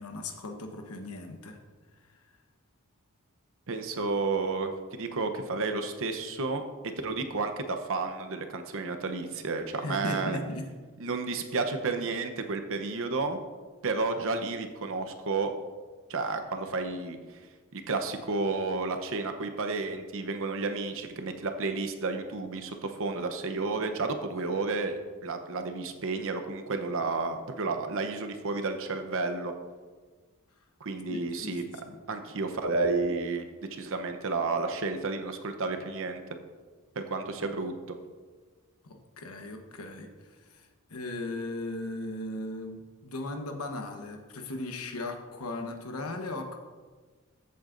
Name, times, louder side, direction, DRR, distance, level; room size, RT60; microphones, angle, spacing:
voice 1, 0.0-1.6 2.0-2.2 9.8-10.7 31.1-32.0 38.8-46.6, left 2 dB, 70° left, 4 dB, 1.1 m, -38 dB
voice 2, 3.7-6.6 7.0-10.4 11.0-13.4 13.8-15.5 16.1-17.2 17.7-29.5 30.8-31.6 32.1-33.5 33.7-36.2 37.0-37.7, right 3 dB, 65° right, 7 dB, 0.9 m, -31 dB
14.0 x 8.0 x 2.6 m, 1.4 s
head